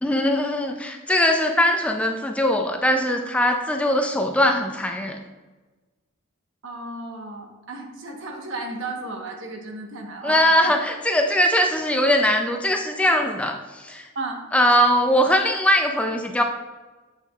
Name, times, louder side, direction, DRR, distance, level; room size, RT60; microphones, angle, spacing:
voice 1, 0.0-5.2 10.2-14.1 14.5-16.4, equal, 5° left, 4 dB, 0.4 m, -21 dB
voice 2, 6.6-10.8 14.1-14.4, right 2 dB, 60° right, 2 dB, 1.1 m, -34 dB
7.9 x 6.6 x 2.4 m, 1.2 s
head